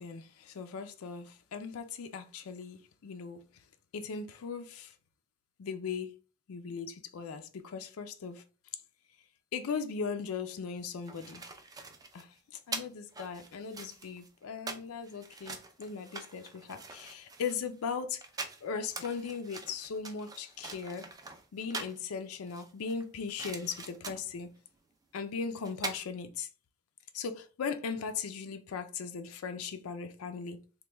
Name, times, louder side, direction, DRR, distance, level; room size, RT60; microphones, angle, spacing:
voice 1, 0.0-3.4 3.9-4.9 5.6-6.1 6.5-8.4 9.5-11.4 12.1-18.2 18.6-21.1 21.5-24.5 25.1-26.5 27.1-30.6, left 5 dB, 70° left, 0.4 m, -38 dB
sound 1, 10.8-22.0 22.5-24.4 25.4-25.5 25.6-26.0, right 3 dB, 15° right, 0.3 m, -44 dB
3.0 x 2.2 x 3.3 m
head